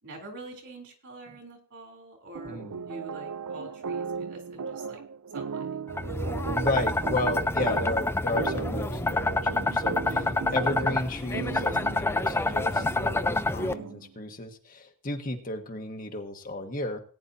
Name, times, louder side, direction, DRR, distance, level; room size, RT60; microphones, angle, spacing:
voice 1, 0.0-2.6 2.9-5.0 5.3-5.7, right 2 dB, 60° right, 2 dB, 3.6 m, -45 dB
sound 1, 2.3-14.1, right 6 dB, 85° right, 0.5 m, -37 dB
voice 2, 2.4-2.8 6.5-17.0, left 2 dB, 40° left, 4 dB, 1.4 m, -33 dB
sound 2, 5.9-13.7, left 2 dB, 10° left, 0.4 m, -28 dB
19.0 x 9.9 x 2.8 m, 0.41 s
head